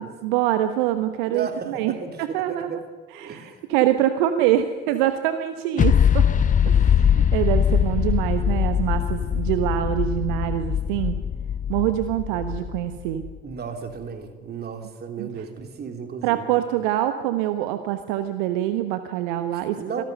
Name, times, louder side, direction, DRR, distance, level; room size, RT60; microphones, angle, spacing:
voice 1, 0.0-2.8 3.1-6.3 6.6-11.2 11.7-13.2 15.2-15.3 16.2-19.8, right 12 dB, 60° right, 9 dB, 1.2 m, -25 dB
voice 2, 1.3-2.8 3.1-3.6 13.4-16.5 19.5-20.0, right 5 dB, 35° right, 6 dB, 3.1 m, -35 dB
sound 1, 5.8-13.3, left 8 dB, 25° left, 0.9 m, -21 dB
26.0 x 18.0 x 6.7 m, 1.4 s
figure-of-eight pair, 60°, 29 cm